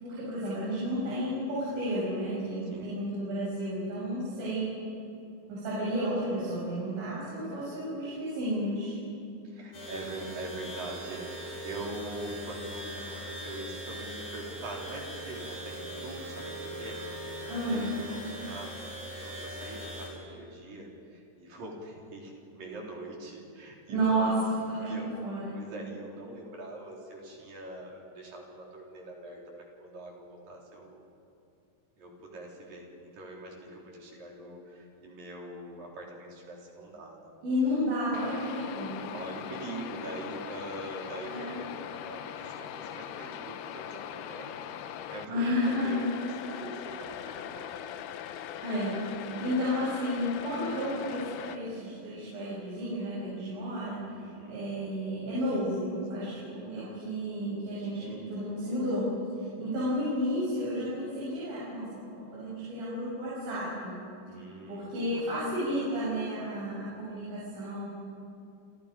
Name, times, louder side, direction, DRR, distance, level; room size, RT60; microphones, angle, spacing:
voice 1, 0.0-4.8 5.5-9.0 17.4-17.9 23.9-24.4 24.7-25.6 37.4-39.0 41.2-41.6 45.3-46.0 46.5-47.0 48.6-49.0 49.4-54.0 54.5-59.1 59.4-64.0 64.7-67.9, equal, 80° right, -9 dB, 9.0 m, -32 dB
voice 2, 9.4-17.4 17.7-18.9 19.2-24.3 24.8-25.1 25.5-29.4 29.8-31.0 32.0-37.2 38.9-48.0 49.2-49.6 54.1-54.7 56.2-56.5 64.3-65.3, right 1 dB, 50° right, -2 dB, 5.4 m, -43 dB
sound 1, 9.7-20.1, right 1 dB, 45° left, 8.8 m, -40 dB
sound 2, 38.1-45.3 45.6-51.6, left 10 dB, 75° left, 2.4 m, -41 dB
29.5 x 29.0 x 5.2 m, 2.6 s
omnidirectional pair, 5.5 m